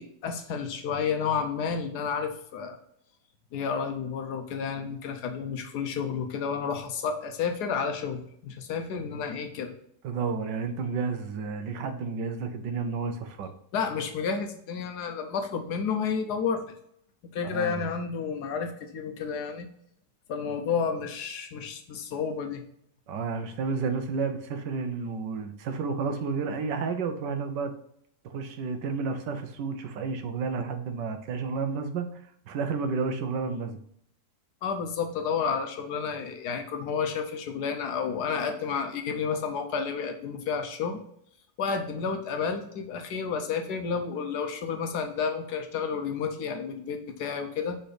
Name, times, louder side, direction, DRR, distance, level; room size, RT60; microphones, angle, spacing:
voice 1, 0.0-2.8 3.5-9.7 13.7-16.6 17.3-19.7 20.3-22.6 34.6-41.0 41.6-47.8, left 6 dB, 65° left, 6 dB, 1.2 m, -31 dB
voice 2, 10.0-13.5 17.4-17.8 23.1-27.7 28.2-33.8, right 5 dB, 75° right, 7 dB, 1.4 m, -31 dB
5.2 x 4.4 x 5.0 m, 0.69 s
omnidirectional pair, 1.9 m